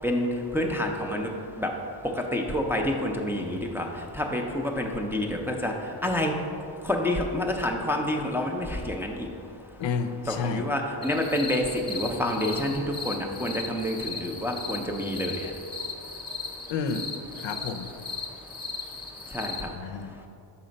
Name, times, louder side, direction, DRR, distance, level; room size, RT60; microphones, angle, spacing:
voice 1, 0.0-6.5 6.8-9.3 10.3-15.5 19.3-19.8, left 1 dB, 5° right, 0 dB, 0.4 m, -28 dB
voice 2, 9.8-10.6 16.7-17.1 17.4-17.9 19.7-20.2, left 5 dB, 75° left, 7 dB, 0.6 m, -30 dB
sound 1, 11.0-19.6, left 4 dB, 10° left, 0.8 m, -37 dB
5.8 x 4.2 x 5.1 m, 2.5 s
cardioid pair, 110°, 46 cm